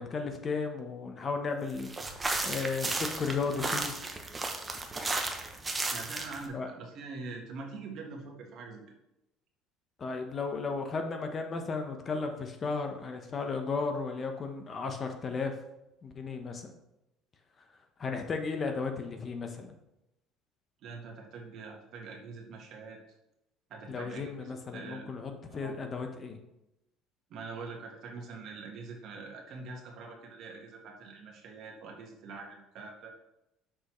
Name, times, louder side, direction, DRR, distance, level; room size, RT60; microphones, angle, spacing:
voice 1, 0.0-1.9 2.4-4.0 6.5-6.7 10.0-15.6 16.0-16.7 18.0-19.8 23.9-26.4, left 4 dB, 35° left, 5 dB, 0.9 m, -34 dB
sound 1, 1.8-6.5, right 2 dB, 20° right, 0.8 m, -34 dB
voice 2, 5.9-8.8 20.8-23.0 23.7-25.1 25.5-25.7 27.3-33.1, right 4 dB, 60° right, 1 dB, 1.4 m, -44 dB
6.1 x 5.3 x 3.1 m, 0.89 s
supercardioid pair, 105°, 0 cm